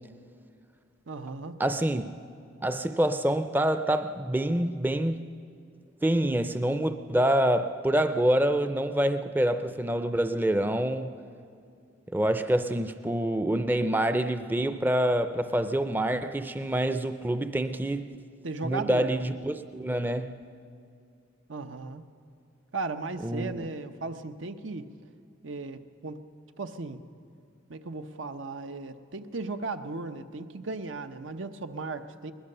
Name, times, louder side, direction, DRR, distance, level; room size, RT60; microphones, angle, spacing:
voice 1, 1.1-1.6 18.4-19.1 21.5-22.0 22.7-24.9 25.4-26.2 26.6-27.0 27.7-32.3, right 3 dB, 90° right, 0.9 m, -36 dB
voice 2, 1.6-2.2 2.6-5.2 6.0-11.2 12.1-18.1 18.6-20.4 23.2-23.6, right 1 dB, 10° right, 0.4 m, -26 dB
21.0 x 20.0 x 6.7 m
head